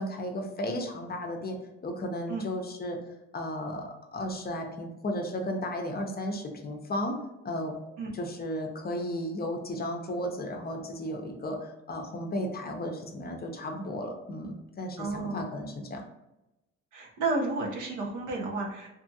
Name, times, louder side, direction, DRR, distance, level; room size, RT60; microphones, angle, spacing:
voice 1, 0.0-1.6 1.8-3.0 3.3-7.2 7.4-7.8 8.1-16.0, left 1 dB, 30° left, 3 dB, 0.5 m, -34 dB
voice 2, 15.0-15.4 16.9-18.9, right 3 dB, 85° right, -1 dB, 0.8 m, -31 dB
2.6 x 2.4 x 2.6 m, 0.94 s
cardioid pair, 90°, 30 cm